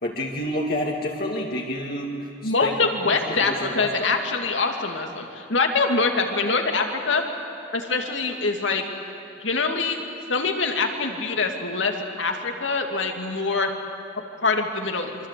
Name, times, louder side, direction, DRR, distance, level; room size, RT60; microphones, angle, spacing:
voice 1, 0.0-2.7 3.3-4.1, left 1 dB, 55° left, -2 dB, 2.4 m, -29 dB
voice 2, 2.4-7.2 7.7-8.8 9.4-10.0 10.3-13.7 14.4-15.2, left 4 dB, 90° left, 3 dB, 2.8 m, -24 dB
27.5 x 24.5 x 8.6 m, 2.7 s
head